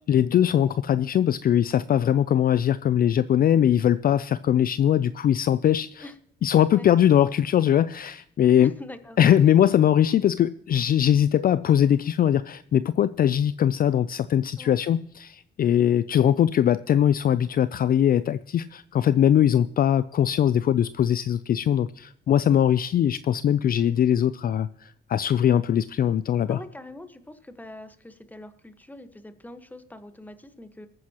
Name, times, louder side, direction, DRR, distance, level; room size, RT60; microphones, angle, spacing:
voice 1, 0.1-6.0 6.4-8.7 9.2-26.6, left 10 dB, 50° left, 0.4 m, -21 dB
voice 2, 8.6-9.2 14.6-14.8 26.5-30.9, left 1 dB, 10° left, 1.2 m, -43 dB
20.5 x 9.4 x 2.9 m
cardioid pair, 90°, 20 cm